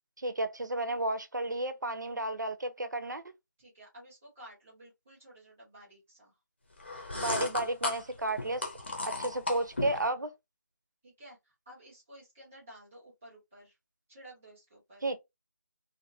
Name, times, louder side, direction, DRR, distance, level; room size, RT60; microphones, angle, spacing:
voice 1, 0.2-3.2 7.1-8.6 9.0-10.3 15.0-15.2, right 1 dB, 70° right, 0.8 m, -32 dB
voice 2, 3.6-6.4 11.0-13.7 14.1-15.1, right 1 dB, 5° right, 0.4 m, -53 dB
sound 1, 6.8-10.1, left 2 dB, 35° left, 0.8 m, -36 dB
2.8 x 2.7 x 2.7 m
figure-of-eight pair, 175°, 10 cm